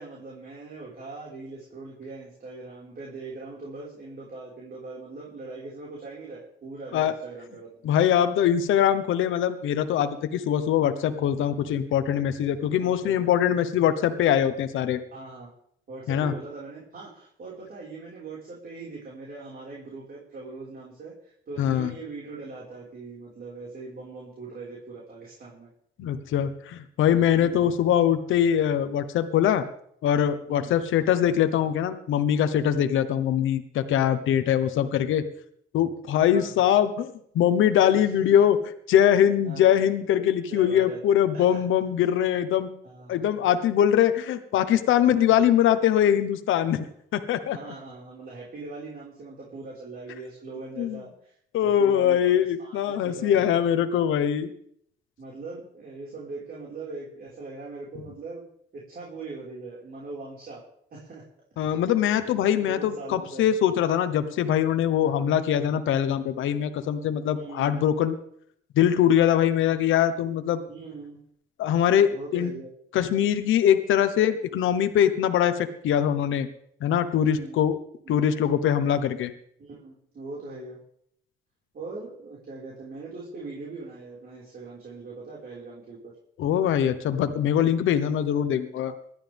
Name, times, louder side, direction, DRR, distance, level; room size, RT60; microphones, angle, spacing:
voice 1, 0.0-7.7 12.8-13.1 15.1-15.5 15.9-25.7 27.4-27.7 30.5-30.8 32.6-32.9 34.6-34.7 36.3-36.5 37.9-38.1 39.4-39.7 40.5-41.0 41.3-41.6 42.8-43.2 45.1-45.3 47.5-51.4 51.6-53.5 55.2-58.4 58.7-60.6 60.9-61.2 62.6-63.5 65.0-65.3 67.3-67.9 70.7-71.2 72.1-72.7 77.2-77.6 78.0-78.2 79.6-80.8 81.7-86.1, right 3 dB, 50° right, -5 dB, 5.2 m, -41 dB
voice 2, 7.8-15.0 16.1-16.3 21.6-21.9 26.0-29.6 30.0-35.2 35.7-42.7 43.1-46.9 47.1-47.6 50.8-51.0 51.5-54.5 61.6-68.2 68.8-70.6 71.6-72.5 72.9-76.5 76.8-77.8 78.1-79.3 86.4-88.9, left 10 dB, 80° left, 10 dB, 1.2 m, -22 dB
20.0 x 13.0 x 3.6 m, 0.66 s
cardioid pair, 90°, 20 cm